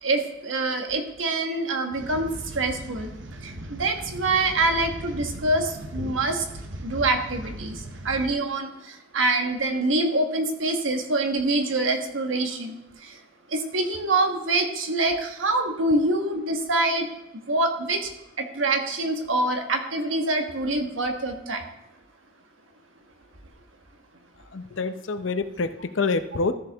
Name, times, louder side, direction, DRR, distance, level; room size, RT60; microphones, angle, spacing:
voice 1, 0.0-2.3 2.5-3.1 3.4-3.5 3.8-6.4 6.8-7.8 8.0-13.1 13.5-17.1 17.5-18.1 18.5-21.6, right 2 dB, 85° right, 4 dB, 1.3 m, -25 dB
sound 1, 1.9-8.3, right 1 dB, 70° right, 0.9 m, -38 dB
voice 2, 24.4-26.5, left 4 dB, 75° left, 10 dB, 0.7 m, -27 dB
13.5 x 6.6 x 3.5 m, 0.90 s
head